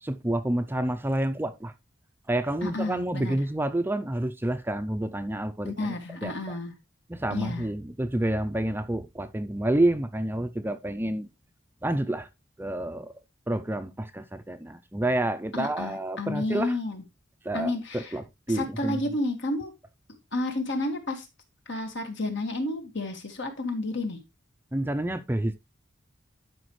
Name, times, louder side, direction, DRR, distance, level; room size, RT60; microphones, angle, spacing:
voice 1, 0.0-1.7 2.3-6.6 7.1-11.3 11.8-12.3 12.6-13.1 13.5-16.8 17.4-19.0 24.7-25.6, right 1 dB, 10° right, 0.5 m, -29 dB
voice 2, 2.6-3.4 5.6-6.7 7.3-7.7 15.5-17.0 17.5-18.1 18.5-19.7 20.3-21.3 21.7-24.2, left 2 dB, 65° left, 1.9 m, -31 dB
12.0 x 5.1 x 3.2 m
head